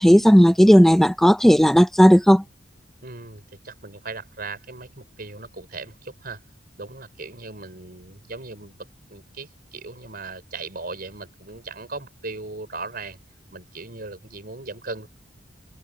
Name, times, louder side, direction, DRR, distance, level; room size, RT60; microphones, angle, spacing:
voice 1, 0.0-2.4, equal, ahead, 0.5 m, -14 dB
voice 2, 3.0-6.4 6.8-8.7 9.1-13.2 13.5-15.1, right 3 dB, 50° right, 4.8 m, -38 dB
head